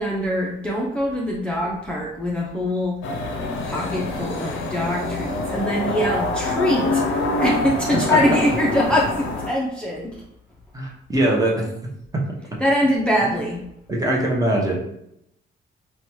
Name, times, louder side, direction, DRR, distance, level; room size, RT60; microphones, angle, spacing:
voice 1, 0.0-3.0 3.6-10.2 12.6-13.6, left 1 dB, 5° left, -4 dB, 0.4 m, -23 dB
sound 1, 3.0-9.5, left 2 dB, 75° left, 0.5 m, -25 dB
voice 2, 10.7-11.7 12.1-12.2 13.9-14.9, right 1 dB, 15° right, -2 dB, 0.8 m, -21 dB
2.9 x 2.2 x 2.9 m, 0.79 s
cardioid pair, 90°, 20 cm